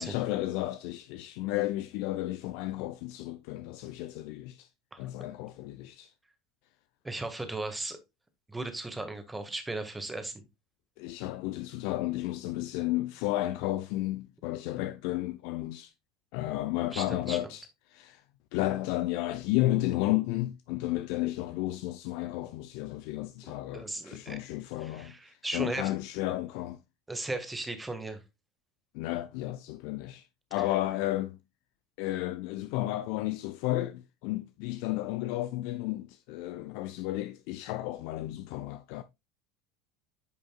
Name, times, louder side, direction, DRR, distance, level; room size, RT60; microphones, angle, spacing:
voice 1, 0.0-4.7 5.0-6.1 11.0-15.9 16.3-17.6 17.9-18.2 18.5-26.8 28.9-31.4 32.0-39.0, left 16 dB, 65° left, 0.4 m, -33 dB
voice 2, 7.0-8.0 8.5-10.3 16.9-17.4 23.7-24.4 24.8-25.9 27.1-28.2, right 2 dB, 10° right, 1.7 m, -36 dB
9.2 x 5.2 x 2.3 m
hypercardioid pair, 80°, 0 cm